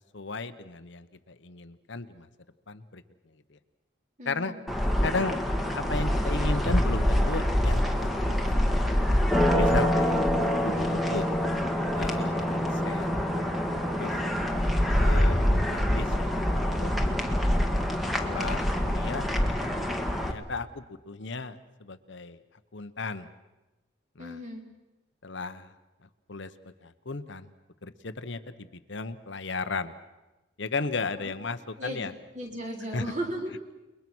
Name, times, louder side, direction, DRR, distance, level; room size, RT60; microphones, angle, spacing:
voice 1, 0.1-2.3 2.7-3.0 3.5-3.6 4.2-4.5 5.0-5.4 5.7-8.7 9.5-11.3 11.9-13.2 13.9-14.1 15.0-16.4 16.8-16.9 18.2-19.3 20.2-22.4 22.7-23.3 24.2-24.4 25.2-25.7 26.3-26.5 26.8-27.5 27.8-29.9 30.6-32.1 32.9-33.0, left 3 dB, 60° left, 10 dB, 1.0 m, -35 dB
voice 2, 4.2-4.6 10.2-11.0 17.0-17.2 24.2-24.6 31.2-31.3 31.8-32.1 32.3-33.5, equal, 35° right, 1 dB, 4.0 m, -37 dB
sound 1, 4.7-20.3, equal, ahead, 1.6 m, -25 dB
29.5 x 21.5 x 6.2 m, 1.1 s
head